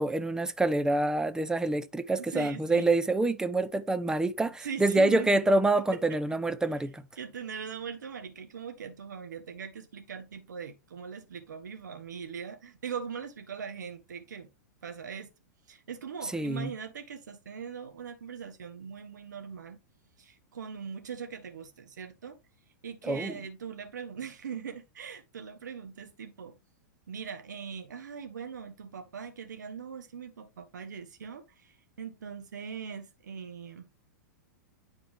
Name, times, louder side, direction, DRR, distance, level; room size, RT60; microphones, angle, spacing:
voice 1, 0.0-7.0 16.3-16.7 23.0-23.3, right 2 dB, 5° right, 0.7 m, -26 dB
voice 2, 2.2-2.9 4.6-5.4 5.7-6.2 7.2-14.5 14.8-15.3 15.7-19.8 20.2-22.4 22.8-26.5 27.1-33.9, right 6 dB, 75° right, 1.6 m, -41 dB
10.0 x 4.3 x 3.4 m
hypercardioid pair, 110°, 10 cm